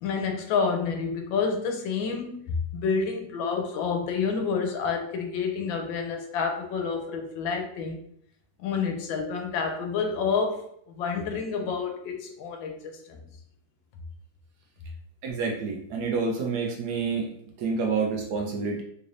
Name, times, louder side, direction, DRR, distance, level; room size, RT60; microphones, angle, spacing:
voice 1, 0.0-2.4 2.7-8.0 8.6-13.2, left 5 dB, 85° left, 4 dB, 1.4 m, -29 dB
voice 2, 15.2-18.8, right 4 dB, 70° right, 1 dB, 1.0 m, -28 dB
3.9 x 3.2 x 2.5 m, 0.68 s
omnidirectional pair, 2.1 m